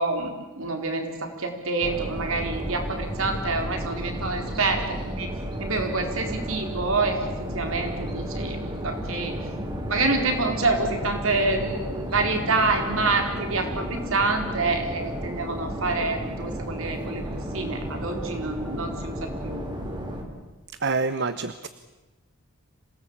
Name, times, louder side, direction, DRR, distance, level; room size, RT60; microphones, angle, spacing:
voice 1, 0.0-5.3 5.6-7.3 7.5-8.6 8.8-9.4 9.9-17.2 17.5-19.6, right 3 dB, 65° right, 4 dB, 4.1 m, -27 dB
sound 1, 1.8-20.2, equal, 20° right, 3.4 m, -33 dB
voice 2, 20.8-21.7, right 4 dB, 50° right, 13 dB, 0.8 m, -26 dB
26.5 x 18.5 x 8.7 m, 1.2 s
head